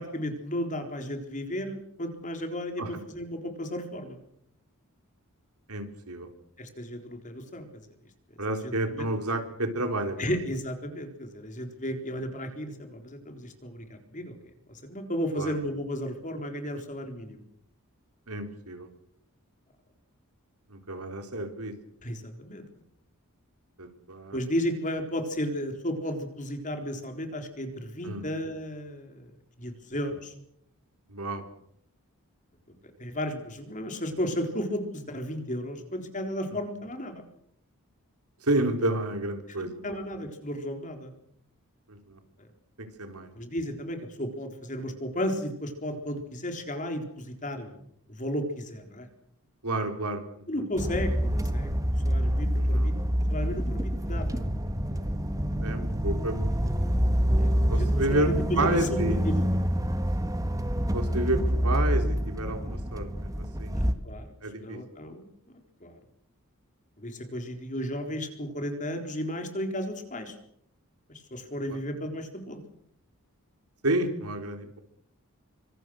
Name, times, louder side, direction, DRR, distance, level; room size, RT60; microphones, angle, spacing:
voice 1, 0.0-4.2 6.6-7.7 8.5-9.1 10.2-14.4 14.7-17.4 22.0-22.6 24.3-30.3 33.0-37.2 39.5-41.1 42.4-42.5 43.3-47.8 48.1-49.1 50.5-51.8 52.0-52.9 53.3-54.4 57.4-59.4 63.8-64.3 64.6-66.0 67.0-70.4 71.1-72.6, equal, 35° left, 5 dB, 4.0 m, -34 dB
voice 2, 5.7-6.3 8.4-10.2 15.4-15.5 18.3-18.9 20.7-21.7 23.8-24.4 28.0-28.2 31.1-31.4 38.4-39.8 41.9-42.2 42.8-43.3 49.6-50.5 52.7-52.9 55.6-56.4 57.7-58.3 58.6-59.2 60.9-63.7 64.4-64.8 71.7-71.8 73.8-74.8, right 2 dB, 90° right, 6 dB, 3.8 m, -30 dB
sound 1, 50.8-63.9, equal, 15° right, 1.6 m, -27 dB
25.5 x 25.0 x 6.4 m, 0.72 s
head